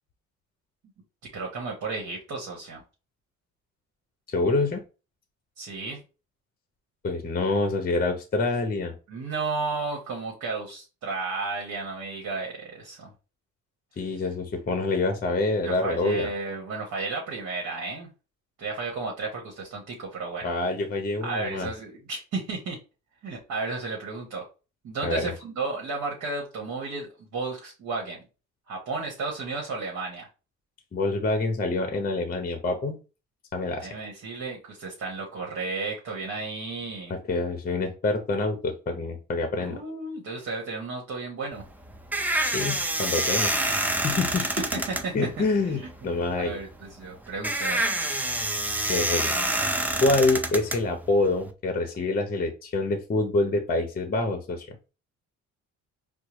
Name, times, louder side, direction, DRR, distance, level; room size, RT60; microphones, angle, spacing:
voice 1, 1.3-2.8 5.6-6.0 9.1-13.1 15.6-18.1 18.6-20.5 21.2-22.8 23.2-24.5 24.8-28.2 28.7-30.3 33.8-37.1 39.6-41.6 44.4-45.1 45.7-45.9 46.4-47.9, right 3 dB, 65° right, -1 dB, 1.1 m, -33 dB
voice 2, 4.3-4.8 7.0-8.9 14.0-16.3 20.4-21.7 25.0-25.3 30.9-32.9 33.5-33.9 37.1-39.8 42.4-43.5 44.0-44.4 45.1-46.6 48.9-49.3 50.0-54.8, left 2 dB, 30° left, 6 dB, 0.7 m, -26 dB
sound 1, 41.5-51.5, right 1 dB, 5° right, 0.4 m, -28 dB
4.5 x 2.0 x 3.0 m, 0.32 s
cardioid pair, 90°, 30 cm